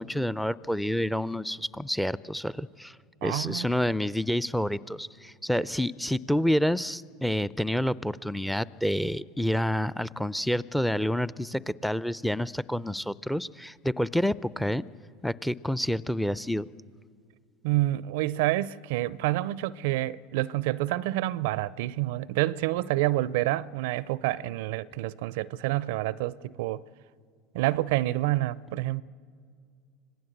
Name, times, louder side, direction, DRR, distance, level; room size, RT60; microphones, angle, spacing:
voice 1, 0.0-3.0 3.2-14.9 15.2-16.7, left 1 dB, ahead, 0.5 m, -28 dB
voice 2, 3.2-3.7 17.6-26.8 27.5-29.0, right 16 dB, 70° right, 0.5 m, -28 dB
26.0 x 18.5 x 7.9 m
hypercardioid pair, 85°, 0 cm